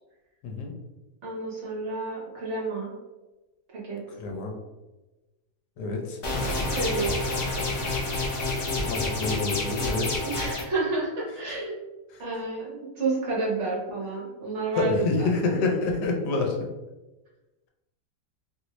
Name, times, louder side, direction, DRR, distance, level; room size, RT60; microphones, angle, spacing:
voice 1, 1.2-2.9 3.7-4.0 6.7-7.2 10.2-11.7 12.2-15.6, right 3 dB, 50° right, -4 dB, 1.0 m, -30 dB
voice 2, 4.2-4.5 5.8-6.2 8.9-10.1 11.5-11.6 12.1-12.2 14.8-16.6, left 3 dB, 75° left, 1 dB, 1.1 m, -27 dB
sound 1, 6.2-10.6, left 2 dB, 55° left, 0.7 m, -28 dB
2.9 x 2.6 x 3.0 m, 1.1 s
omnidirectional pair, 1.9 m